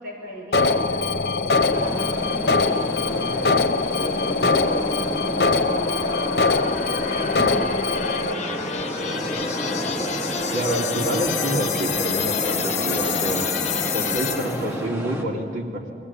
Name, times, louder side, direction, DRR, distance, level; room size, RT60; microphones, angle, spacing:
voice 1, 0.0-6.3 7.1-9.3, right 1 dB, 50° right, -4 dB, 6.3 m, -37 dB
Alarm, 0.5-8.3, left 3 dB, 65° left, 0.9 m, -22 dB
sound 1, 0.7-14.7, left 5 dB, 40° left, 1.1 m, -29 dB
sound 2, 1.7-15.2, equal, 10° right, 2.2 m, -32 dB
voice 2, 10.5-13.5 13.9-15.9, right 1 dB, 85° right, -3 dB, 2.8 m, -27 dB
21.5 x 18.5 x 8.6 m, 2.1 s
head